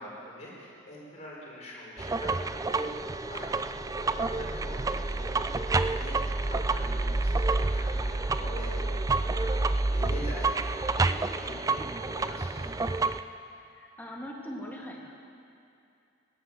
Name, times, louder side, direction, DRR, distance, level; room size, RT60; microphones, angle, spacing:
voice 1, 0.0-2.3 2.7-3.0 3.3-9.5 9.9-12.7, left 1 dB, 35° left, -5 dB, 4.6 m, -44 dB
sound 1, 2.0-13.2, right 3 dB, 15° right, 0.3 m, -29 dB
voice 2, 13.7-15.1, equal, 10° left, -2 dB, 2.0 m, -40 dB
17.5 x 11.0 x 7.4 m, 2.5 s
head